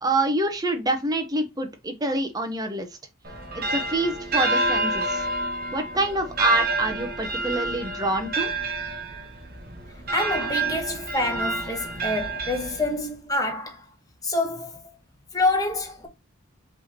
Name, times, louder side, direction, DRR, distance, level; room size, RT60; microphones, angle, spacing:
voice 1, 0.0-2.9 3.5-5.2 5.7-8.5, right 2 dB, 15° right, 0.8 m, -26 dB
sound 1, 3.2-13.2, right 2 dB, 40° right, 1.1 m, -28 dB
voice 2, 10.1-13.8 14.2-14.8 15.3-16.1, left 2 dB, 15° left, 1.1 m, -27 dB
5.3 x 3.3 x 2.8 m
head